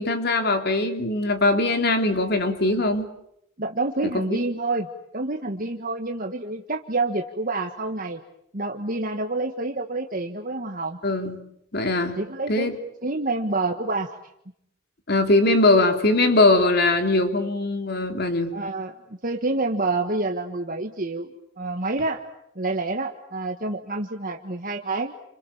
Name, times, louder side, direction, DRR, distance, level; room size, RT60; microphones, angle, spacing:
voice 1, 0.0-3.1 4.0-4.2 11.0-11.4 11.7-12.2 12.5-12.8 15.1-18.5, left 2 dB, 55° left, 5 dB, 3.5 m, -21 dB
voice 2, 3.6-8.2 8.5-11.0 12.2-12.7 13.0-14.2 18.5-21.3 21.6-22.2 22.6-25.1, right 2 dB, 45° right, 4 dB, 1.6 m, -28 dB
30.0 x 27.5 x 7.3 m, 0.76 s
head